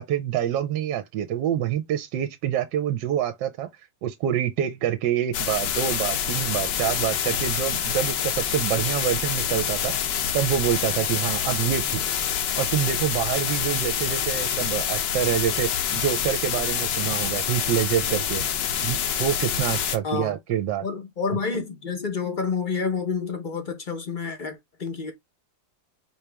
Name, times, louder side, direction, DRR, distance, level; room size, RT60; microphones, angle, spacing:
voice 1, 0.0-3.7 4.0-9.9 10.3-12.0 12.6-18.4 18.8-20.8, right 10 dB, 75° right, 1.2 m, -26 dB
sound 1, 5.3-20.0, left 9 dB, 70° left, 1.3 m, -26 dB
voice 2, 20.8-25.1, left 5 dB, 45° left, 0.6 m, -29 dB
5.0 x 2.9 x 3.3 m
omnidirectional pair, 2.1 m